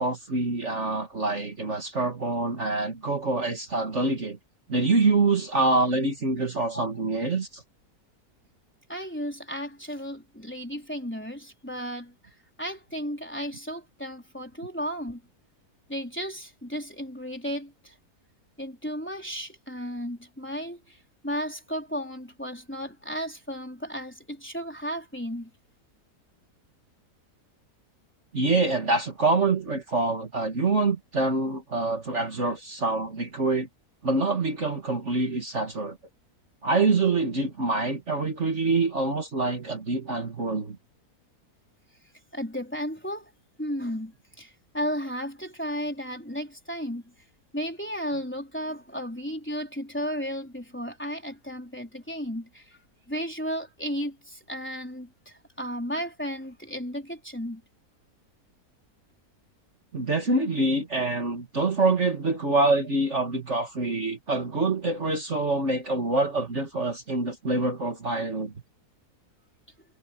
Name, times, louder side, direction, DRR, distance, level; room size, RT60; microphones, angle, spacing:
voice 1, 0.0-4.4 4.7-7.6 28.3-33.7 34.0-36.0 36.6-40.8 59.9-68.5, right 3 dB, 50° right, 2.3 m, -25 dB
voice 2, 8.9-12.3 12.6-15.2 15.9-17.9 18.6-21.0 21.2-25.5 42.3-43.3 43.6-47.1 47.5-52.8 53.1-57.6, equal, 5° left, 3.9 m, -34 dB
omnidirectional pair, 1.6 m